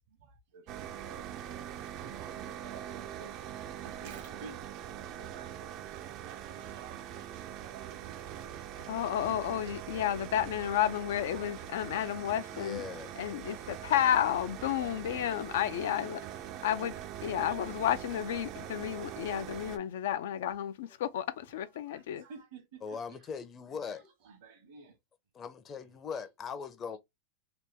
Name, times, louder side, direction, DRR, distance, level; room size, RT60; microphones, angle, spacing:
voice 1, 0.0-3.4 3.7-8.7 9.0-9.6 10.4-11.0 11.3-11.5 11.9-13.4 13.7-15.0 15.6-17.9 18.2-19.3 19.5-19.7 20.5-21.0 21.3-23.3 23.8-25.0 25.9-26.3, right 5 dB, 75° right, 0.9 m, -54 dB
sound 1, 0.7-19.8, right 10 dB, 45° right, 0.4 m, -43 dB
voice 2, 8.9-12.8 13.2-16.2 16.6-17.0 17.2-22.2, left 10 dB, 75° left, 0.4 m, -31 dB
voice 3, 12.5-13.1 22.8-24.0 25.3-27.0, left 6 dB, 30° left, 0.6 m, -40 dB
2.9 x 2.2 x 3.4 m
supercardioid pair, 125°, 0 cm